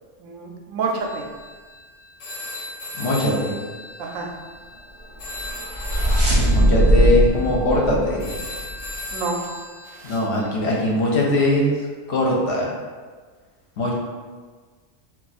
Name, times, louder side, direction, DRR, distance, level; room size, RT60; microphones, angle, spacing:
voice 1, 0.2-1.3 4.0-4.3 9.1-9.5 9.8-10.2, right 4 dB, 85° right, 0 dB, 1.0 m, -28 dB
sound 1, 1.0-10.5, left 1 dB, 80° left, 0.3 m, -37 dB
voice 2, 2.9-3.6 6.5-8.3 10.0-11.8 12.1-12.7 13.8-13.9, left 1 dB, 60° left, -2 dB, 0.9 m, -21 dB
sound 2, 5.3-8.9, right 1 dB, 50° right, 0.3 m, -20 dB
2.4 x 2.4 x 4.1 m, 1.5 s
omnidirectional pair, 1.3 m